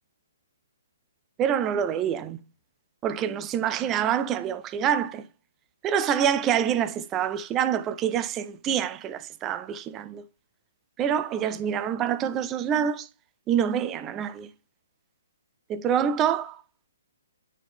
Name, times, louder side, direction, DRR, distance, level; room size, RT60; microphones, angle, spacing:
voice 1, 1.4-2.4 3.0-5.3 5.8-10.2 11.0-13.1 13.5-14.5 15.7-16.6, right 9 dB, 20° right, 0.6 m, -26 dB
9.9 x 4.3 x 3.4 m
figure-of-eight pair, 130°, 0 cm